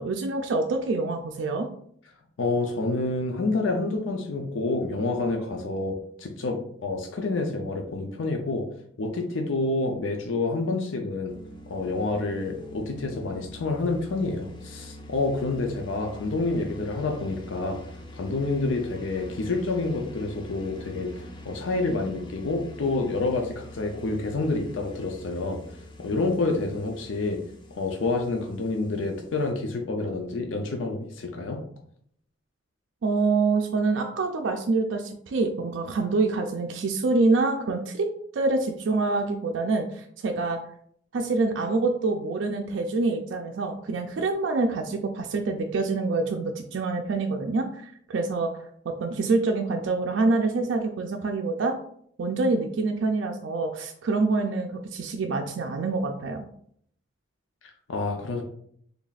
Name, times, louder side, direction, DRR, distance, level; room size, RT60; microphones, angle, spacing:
voice 1, 0.0-1.7 33.0-38.1 38.3-40.6 41.1-48.5 48.9-51.8 52.2-56.5, right 3 dB, 70° right, 3 dB, 0.4 m, -26 dB
voice 2, 2.4-8.6 9.0-11.3 11.7-17.8 18.1-25.6 26.0-27.4 27.8-31.6 57.9-58.4, left 3 dB, 85° left, 3 dB, 0.5 m, -28 dB
sound 1, 11.3-29.5, left 1 dB, 25° left, 0.4 m, -45 dB
3.3 x 2.4 x 4.0 m, 0.65 s
head